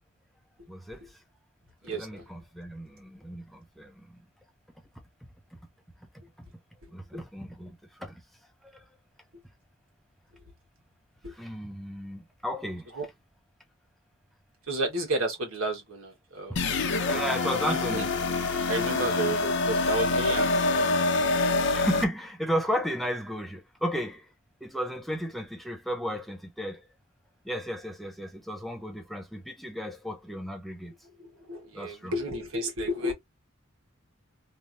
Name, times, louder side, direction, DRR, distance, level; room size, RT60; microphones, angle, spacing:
voice 1, 0.7-1.0 1.8-4.2 6.4-6.5 6.9-8.2 8.7-8.8 11.3-12.9 17.1-18.1 21.7-24.3 24.6-26.9 27.4-30.9 31.7-32.1, equal, ahead, 0.7 m, -34 dB
voice 2, 1.8-2.2 11.2-11.3 12.9-13.1 14.7-16.8 17.7-18.1 18.7-21.0 31.2-33.1, right 1 dB, 75° right, 1.6 m, -32 dB
sound 1, 16.6-22.0, left 3 dB, 60° left, 0.7 m, -26 dB
3.3 x 2.8 x 2.6 m
head